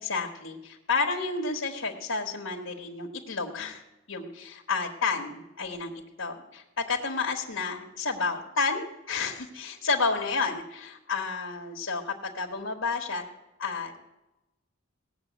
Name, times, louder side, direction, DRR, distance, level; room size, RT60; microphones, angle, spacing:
voice 1, 0.0-3.8 4.1-13.3 13.6-14.0, left 4 dB, 80° left, 0 dB, 1.5 m, -31 dB
18.0 x 6.9 x 8.1 m, 0.98 s
head